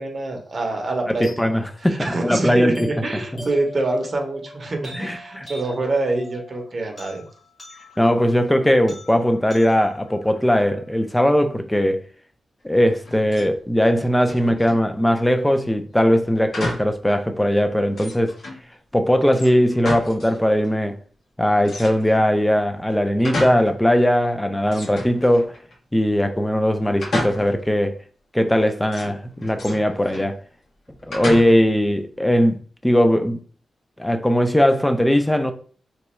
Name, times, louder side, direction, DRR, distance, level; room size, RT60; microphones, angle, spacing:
voice 1, 0.0-1.6 1.9-7.3, right 2 dB, 35° right, 0.7 m, -26 dB
sound 1, 1.2-11.3, left 1 dB, 30° left, 1.1 m, -42 dB
voice 2, 1.2-2.9 4.9-5.5 8.0-12.0 12.6-18.3 18.9-21.0 21.4-25.5 25.9-28.0 28.3-30.4 31.1-32.6 32.8-33.4 34.0-35.5, equal, 10° left, 0.4 m, -19 dB
sound 2, 13.0-13.5 13.8-14.9 16.5-17.0 17.4-17.5 17.9-18.6 19.3-20.4 20.6-20.7 21.6-22.3 22.8-23.8 24.1-24.2 24.7-25.7 27.0-27.7 28.9-30.3 31.1-31.8, left 1 dB, 65° left, 1.2 m, -31 dB
3.0 x 2.3 x 4.2 m
wide cardioid pair, 130°, 0 cm